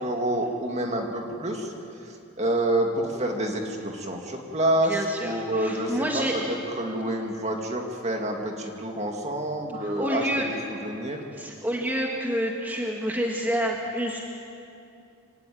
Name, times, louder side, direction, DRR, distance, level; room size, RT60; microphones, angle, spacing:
voice 1, 0.0-1.7 2.4-6.2 6.5-11.2, right 1 dB, 30° right, 2 dB, 2.3 m, -28 dB
voice 2, 4.8-6.3 9.8-10.5 11.3-14.2, equal, 10° right, -1 dB, 1.9 m, -28 dB
25.0 x 17.5 x 9.4 m, 2.7 s
head